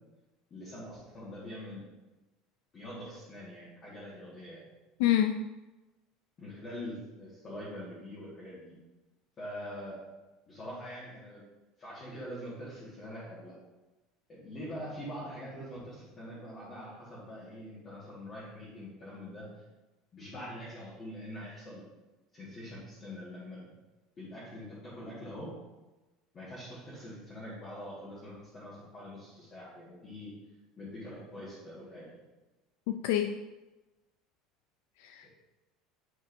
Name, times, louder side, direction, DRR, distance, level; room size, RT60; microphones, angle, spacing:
voice 1, 0.5-1.8 2.7-4.6 6.4-8.7 9.4-10.0 10.5-11.4 11.8-13.5 14.3-19.6 20.1-21.8 22.3-23.6 24.2-25.5 26.3-30.3 30.8-32.1 35.2-35.3, equal, 20° left, -8 dB, 1.6 m, -44 dB
voice 2, 5.0-5.5 32.9-33.4 35.0-35.3, left 11 dB, 70° left, 7 dB, 0.3 m, -27 dB
9.5 x 5.4 x 2.6 m, 1.1 s
cardioid pair, 175°, 0 cm